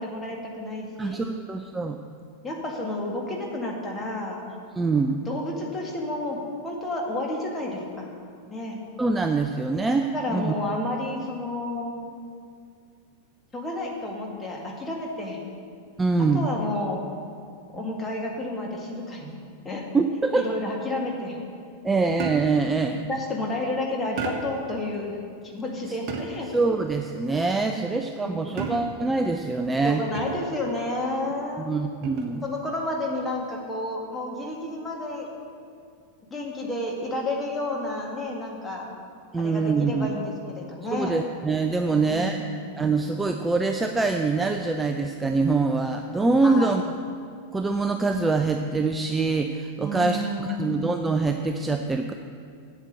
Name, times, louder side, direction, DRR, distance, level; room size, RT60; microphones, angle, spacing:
voice 1, 0.0-1.2 2.4-4.4 5.3-8.1 8.5-8.8 10.1-12.0 13.5-15.4 16.3-17.0 17.7-19.3 19.6-19.9 20.3-21.4 23.1-25.2 25.5-26.5 27.8-28.6 29.8-31.7 32.4-35.3 36.3-38.8 39.4-41.2 41.9-42.6 46.4-46.8 49.8-50.8, left 1 dB, 15° left, -1 dB, 2.0 m, -31 dB
voice 2, 1.0-2.0 4.8-5.2 9.0-10.5 16.0-16.5 19.9-20.5 21.8-23.0 26.5-30.0 31.6-32.4 39.3-40.1 40.9-42.5 42.7-46.8 47.5-52.1, right 3 dB, 10° right, 5 dB, 0.4 m, -24 dB
sound 1, 22.2-22.7 24.2-24.7 26.1-26.6 28.6-29.1 30.1-30.6 32.0-32.4, right 6 dB, 35° right, 1.2 m, -33 dB
8.0 x 7.4 x 7.6 m, 2.3 s
figure-of-eight pair, 90°, 0 cm